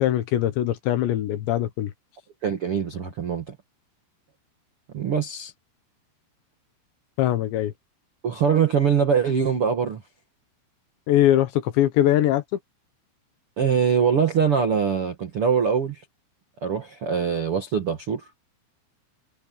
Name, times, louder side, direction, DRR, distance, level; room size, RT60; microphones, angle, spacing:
voice 1, 0.0-1.9 7.2-7.7 11.1-12.4, left 12 dB, 70° left, 3.1 m, -21 dB
voice 2, 2.4-3.5 4.9-5.5 8.2-10.0 13.6-16.0 16.6-18.2, right 7 dB, 80° right, 1.2 m, -23 dB
omnidirectional pair, 5.9 m